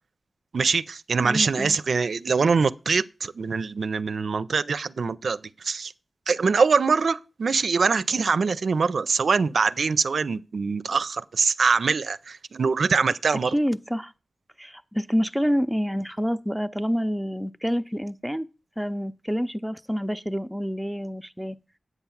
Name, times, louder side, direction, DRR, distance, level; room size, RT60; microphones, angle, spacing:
voice 1, 0.5-5.9 6.3-13.6, right 5 dB, 80° right, 0.4 m, -23 dB
voice 2, 1.2-1.8 13.5-14.1 14.6-18.5 18.8-21.6, equal, ahead, 0.5 m, -27 dB
8.1 x 5.8 x 7.1 m
wide cardioid pair, 75°, 0 cm